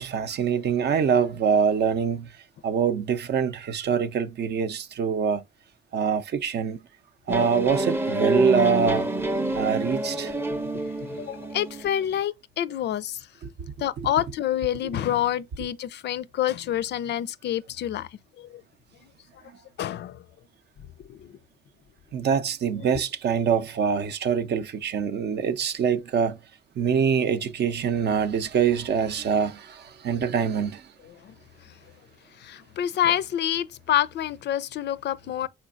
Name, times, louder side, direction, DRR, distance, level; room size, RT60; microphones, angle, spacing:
voice 1, 0.0-2.3 2.6-5.4 5.9-6.8 7.3-9.1 9.6-10.3 13.4-13.5 14.0-14.1 22.1-26.4 26.8-30.8, right 7 dB, 60° right, 0.6 m, -24 dB
sound 1, 7.3-12.0, right 1 dB, 10° right, 0.6 m, -27 dB
voice 2, 10.5-13.2 13.8-18.1 18.4-18.5 19.8-20.2 21.1-21.3 32.4-35.5, left 11 dB, 60° left, 0.4 m, -27 dB
5.0 x 4.3 x 2.4 m
cardioid pair, 90°, 20 cm